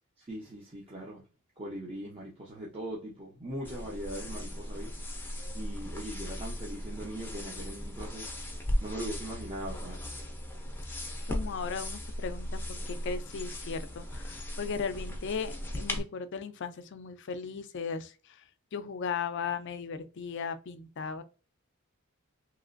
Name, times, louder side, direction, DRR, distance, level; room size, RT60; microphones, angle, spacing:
voice 1, 0.2-1.2 1.6-4.9 5.5-8.3 8.8-10.0, right 1 dB, 30° right, 0.7 m, -40 dB
sound 1, 3.6-16.0, left 1 dB, 10° left, 0.6 m, -37 dB
voice 2, 11.3-18.4 18.7-21.2, left 6 dB, 60° left, 0.4 m, -37 dB
3.0 x 2.9 x 2.5 m
head